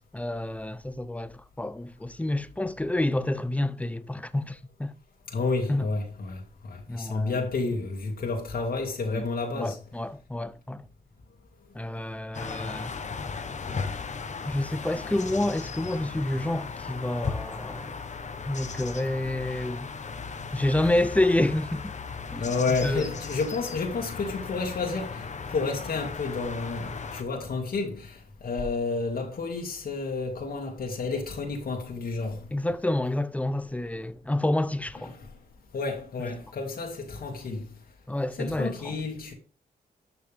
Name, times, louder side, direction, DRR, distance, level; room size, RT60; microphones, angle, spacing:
voice 1, 0.1-5.0 5.7-5.9 6.9-7.4 9.1-9.2 9.5-10.9 11.7-12.9 14.4-17.9 18.4-19.9 20.5-21.9 22.3-22.4 22.8-23.0 32.5-35.2 36.2-36.3 38.1-39.0, left 1 dB, 10° left, 0.7 m, -28 dB
voice 2, 5.3-6.4 6.7-9.8 22.4-25.3 25.5-32.4 35.1-35.3 35.7-37.7 38.4-39.3, left 3 dB, 65° left, 2.3 m, -30 dB
sound 1, 12.3-27.2, left 5 dB, 45° left, 1.2 m, -37 dB
12.5 x 6.0 x 3.6 m
cardioid pair, 90°, 17 cm